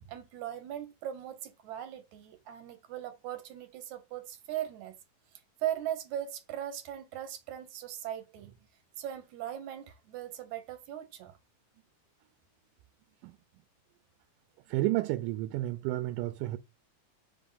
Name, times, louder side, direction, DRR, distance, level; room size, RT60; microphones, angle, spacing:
voice 1, 0.0-4.9 5.3-8.6 9.0-11.4, right 11 dB, 70° right, 2.1 m, -39 dB
voice 2, 14.7-16.6, right 16 dB, 85° right, 2.1 m, -31 dB
5.0 x 3.5 x 5.5 m
omnidirectional pair, 3.7 m